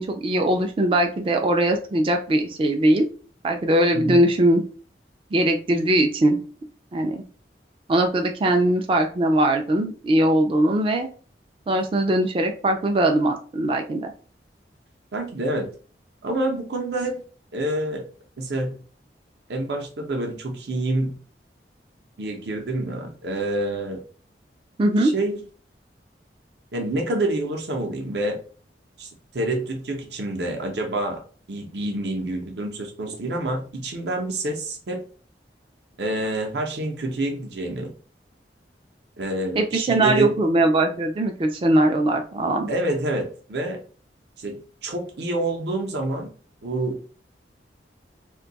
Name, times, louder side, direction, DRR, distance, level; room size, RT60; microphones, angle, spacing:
voice 1, 0.0-3.1 3.4-4.6 5.3-6.4 6.9-7.2 7.9-11.1 11.7-14.1 24.8-25.1 39.6-42.7, right 1 dB, 30° right, 4 dB, 0.3 m, -21 dB
voice 2, 3.9-4.3 15.1-15.7 16.2-17.2 17.5-18.0 18.4-18.8 19.5-21.2 22.2-24.0 25.0-25.4 26.7-28.4 29.0-29.1 29.3-31.2 31.5-35.0 36.0-37.9 39.2-40.4 42.7-43.8 44.4-46.3 46.6-47.0, right 1 dB, 70° right, 2 dB, 0.6 m, -27 dB
2.6 x 2.2 x 3.9 m, 0.40 s
head